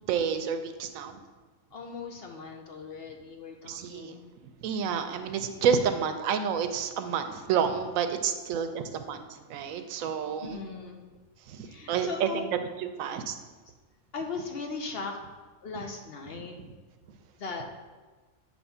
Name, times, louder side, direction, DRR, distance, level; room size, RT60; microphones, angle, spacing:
voice 1, 0.1-1.2 3.7-4.1 4.6-9.2 9.5-10.6 11.5-12.5 12.8-13.4 15.7-15.8, right 7 dB, 85° right, 8 dB, 1.0 m, -29 dB
voice 2, 1.7-4.3 10.4-11.0 11.7-12.5 14.1-15.2 15.6-16.6 17.4-17.6, left 4 dB, 60° left, 2 dB, 0.7 m, -38 dB
7.3 x 2.9 x 5.4 m, 1.3 s
omnidirectional pair, 1.4 m